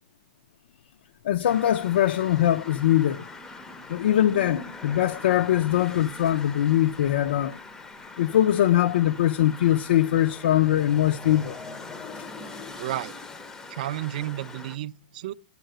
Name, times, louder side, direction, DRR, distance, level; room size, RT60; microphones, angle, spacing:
voice 1, 1.2-3.3 3.9-7.6 8.2-11.6 12.1-12.3, left 12 dB, 70° left, 0.4 m, -22 dB
sound 1, 1.4-14.8, left 3 dB, 10° left, 0.5 m, -42 dB
voice 2, 12.8-13.1 13.7-15.3, right 14 dB, 50° right, 0.5 m, -32 dB
9.1 x 4.7 x 7.7 m
supercardioid pair, 165°, 6 cm